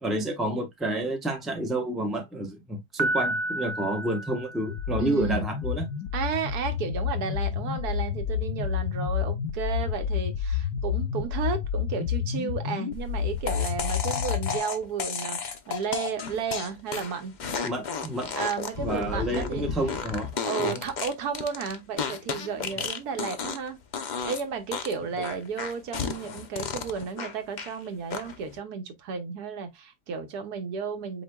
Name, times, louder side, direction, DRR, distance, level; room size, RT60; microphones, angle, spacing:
voice 1, 0.0-5.9 9.8-9.9 17.6-18.3 18.8-20.3 20.6-20.8, right 1 dB, ahead, 0.7 m, -29 dB
Piano, 3.0-5.1, right 1 dB, 45° right, 0.5 m, -31 dB
sound 1, 4.7-14.6, left 8 dB, 85° left, 1.3 m, -30 dB
voice 2, 5.0-5.4 6.1-17.4 18.4-19.7 20.3-23.8 24.2-31.2, right 6 dB, 80° right, 1.4 m, -33 dB
sound 2, 13.5-23.7 23.9-24.4 24.7-27.7 28.1-28.5, left 6 dB, 55° left, 0.5 m, -33 dB
7.9 x 2.7 x 2.2 m
omnidirectional pair, 1.6 m